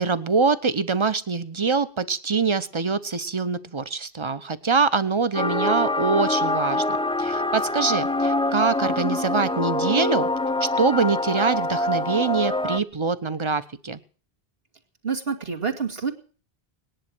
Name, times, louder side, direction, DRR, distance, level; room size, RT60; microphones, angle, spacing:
voice 1, 0.0-10.3 10.6-14.0, right 4 dB, 30° right, 14 dB, 1.0 m, -24 dB
sound 1, 5.3-12.8, left 2 dB, 5° left, 0.4 m, -25 dB
voice 2, 15.0-16.1, right 5 dB, 70° right, 3 dB, 2.7 m, -27 dB
19.5 x 10.5 x 6.2 m, 0.40 s
omnidirectional pair, 1.0 m